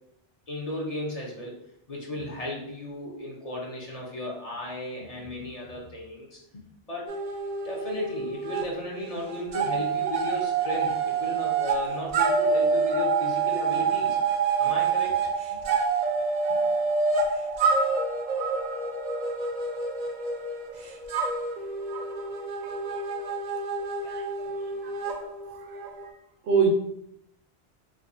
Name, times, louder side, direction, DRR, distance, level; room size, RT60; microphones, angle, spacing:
voice 1, 0.5-1.6 1.9-6.4 6.9-7.1 7.6-14.2 14.6-15.3, left 1 dB, 40° left, -2 dB, 0.7 m, -35 dB
sound 1, 7.1-8.7 9.0-26.1, right 4 dB, 55° right, 0.5 m, -27 dB
voice 2, 22.9-23.3 24.0-24.2 24.8-25.1 26.4-26.7, right 6 dB, 85° right, 1 dB, 1.0 m, -26 dB
4.6 x 2.3 x 2.6 m, 0.75 s
omnidirectional pair, 1.1 m